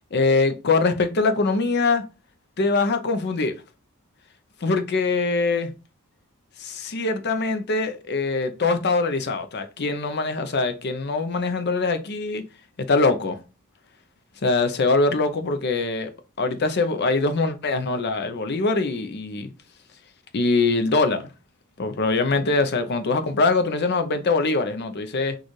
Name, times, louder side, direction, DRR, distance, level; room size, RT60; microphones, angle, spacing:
voice 1, 0.1-2.0 2.6-3.6 4.6-5.7 6.6-12.4 12.8-13.4 14.4-16.1 16.4-19.5 20.3-21.3 21.8-25.4, left 3 dB, 50° left, 0.6 m, -23 dB
6.4 x 2.4 x 3.1 m
head